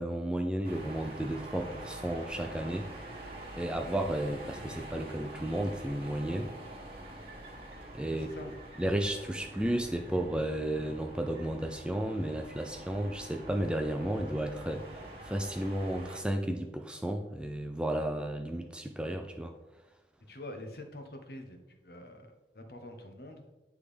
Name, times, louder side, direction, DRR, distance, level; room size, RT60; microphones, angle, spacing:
voice 1, 0.0-2.9 3.6-6.5 7.9-8.3 8.8-19.5, right 1 dB, 5° right, 4 dB, 0.3 m, -33 dB
sound 1, 0.6-16.2, right 1 dB, 30° right, 1.3 m, -46 dB
voice 2, 8.1-8.5 20.3-22.3 22.5-23.4, left 1 dB, 60° left, 5 dB, 0.9 m, -45 dB
9.9 x 3.5 x 3.3 m, 1.0 s
head